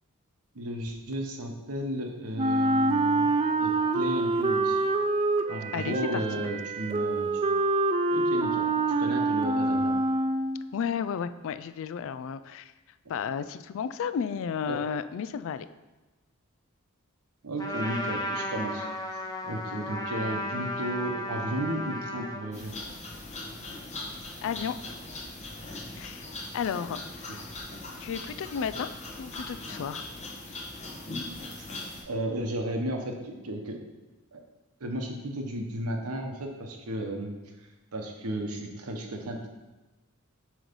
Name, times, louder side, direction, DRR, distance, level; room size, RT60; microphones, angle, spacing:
voice 1, 0.5-3.3 3.6-4.8 5.5-7.3 8.1-8.7 9.0-10.0 14.7-14.8 17.4-18.9 19.4-22.7 27.3-27.4 31.5-31.7 32.1-33.8 34.3-34.4 34.8-37.4 37.9-39.5, right 1 dB, 90° right, 3 dB, 1.0 m, -34 dB
Wind instrument woodwind instrument, 2.4-10.7, right 2 dB, 25° right, 0.3 m, -26 dB
voice 2, 5.7-6.5 10.7-12.7 13.1-15.7 24.4-24.8 26.0-26.3 26.5-27.6 28.0-28.9 29.2-30.1, left 7 dB, 60° left, 13 dB, 0.3 m, -33 dB
Trumpet, 17.6-22.5, equal, 15° left, 0.7 m, -34 dB
sound 1, 22.5-32.0, left 2 dB, 30° left, 1.1 m, -40 dB
7.7 x 3.2 x 5.2 m, 1.1 s
head